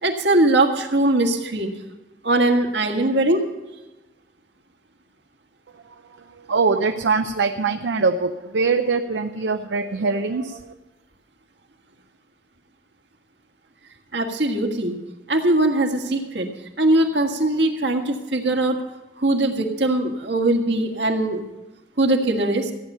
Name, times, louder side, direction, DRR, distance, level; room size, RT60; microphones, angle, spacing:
voice 1, 0.0-1.7 2.2-3.4 14.1-15.0 15.3-16.5 16.8-18.7 19.2-21.4 22.0-22.7, right 2 dB, 75° right, 4 dB, 1.6 m, -20 dB
voice 2, 6.3-10.7, right 4 dB, 90° right, 7 dB, 0.5 m, -23 dB
14.5 x 9.7 x 5.5 m, 1.1 s
head